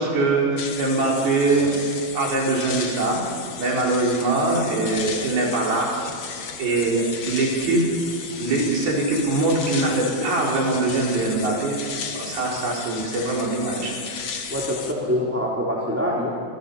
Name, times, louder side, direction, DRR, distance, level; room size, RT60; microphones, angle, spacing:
voice 1, 0.0-1.7 2.1-3.2 3.6-5.9 6.6-7.8 8.4-11.8 12.1-13.9, right 2 dB, 55° right, -2 dB, 6.4 m, -22 dB
sound 1, 0.6-14.9, left 6 dB, 65° left, 1.3 m, -34 dB
voice 2, 14.5-16.3, equal, 5° right, -5 dB, 2.6 m, -24 dB
28.0 x 26.5 x 5.7 m, 2.3 s
omnidirectional pair, 5.3 m